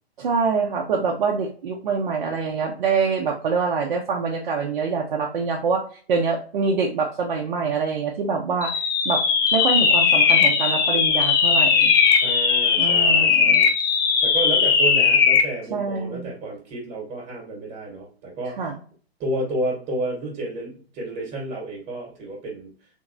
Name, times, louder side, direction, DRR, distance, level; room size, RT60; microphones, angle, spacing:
voice 1, 0.2-5.8 6.1-8.7 9.0-9.2 9.5-11.9 12.8-13.6 15.7-16.3 18.6-18.7, right 5 dB, 50° right, 1 dB, 0.6 m, -25 dB
sound 1, 8.6-15.5, left 6 dB, 20° left, 0.4 m, -18 dB
voice 2, 12.2-13.7 14.2-18.7 19.2-22.7, right 2 dB, 20° right, -2 dB, 1.2 m, -31 dB
3.5 x 2.9 x 2.5 m, 0.42 s
figure-of-eight pair, 115°, 32 cm